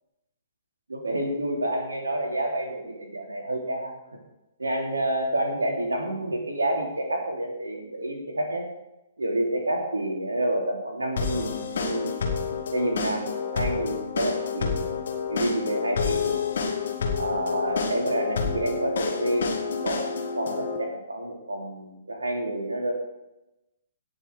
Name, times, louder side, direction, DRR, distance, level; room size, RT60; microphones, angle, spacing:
voice 1, 0.9-3.9 4.6-8.7 9.2-12.1 12.7-14.9 15.3-16.4 17.2-19.4 19.8-20.1 20.3-22.9, right 1 dB, 75° right, 1 dB, 3.2 m, -28 dB
sound 1, 11.2-20.8, left 5 dB, 55° left, 2.4 m, -29 dB
17.5 x 6.8 x 4.8 m, 0.95 s
figure-of-eight pair, 125°, 0 cm